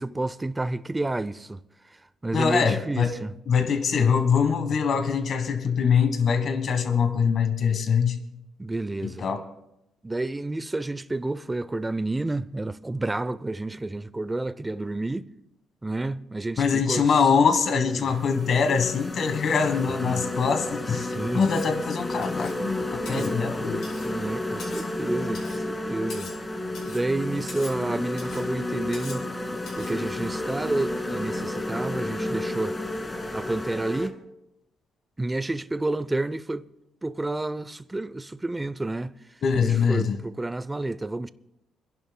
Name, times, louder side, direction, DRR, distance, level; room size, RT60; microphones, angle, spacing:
voice 1, 0.0-1.6 2.2-3.3 8.6-9.2 10.0-15.3 15.8-17.2 17.9-18.1 20.0-20.2 21.0-21.5 23.0-23.3 24.0-26.3 26.9-29.3 29.8-32.8 33.3-34.2 35.2-36.6 37.0-39.2 39.6-41.3, right 2 dB, 15° right, 0.5 m, -30 dB
voice 2, 2.3-3.1 3.5-8.2 9.0-9.4 16.6-21.1 21.3-23.9 39.4-40.2, left 6 dB, 60° left, 1.3 m, -23 dB
sound 1, 17.2-17.3 17.9-34.1, left 1 dB, 20° left, 1.4 m, -31 dB
Cutlery silverware, 21.4-21.8 22.2-22.6 23.0-23.3 23.8-24.1 24.6-24.9 25.3-25.6 26.1-26.4 26.7-27.1 27.5-27.8 28.2-28.5 28.9-29.3 29.7-30.0, left 4 dB, 75° left, 4.8 m, -43 dB
29.0 x 11.0 x 2.2 m
cardioid pair, 90°, 0 cm